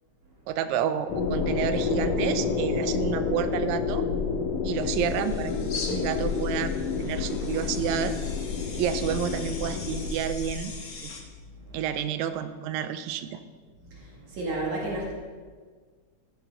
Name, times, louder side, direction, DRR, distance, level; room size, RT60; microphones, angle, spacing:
voice 1, 0.5-4.1 4.6-8.2 8.8-10.7 11.0-11.1 11.7-13.4, right 9 dB, 80° right, 10 dB, 1.8 m, -30 dB
sound 1, 1.1-10.1, left 5 dB, 80° left, 2.5 m, -29 dB
sound 2, 4.9-11.2, left 3 dB, 55° left, 1.0 m, -39 dB
voice 2, 13.8-15.1, right 2 dB, 65° right, -4 dB, 3.4 m, -33 dB
15.0 x 11.0 x 3.9 m, 1.5 s
omnidirectional pair, 3.7 m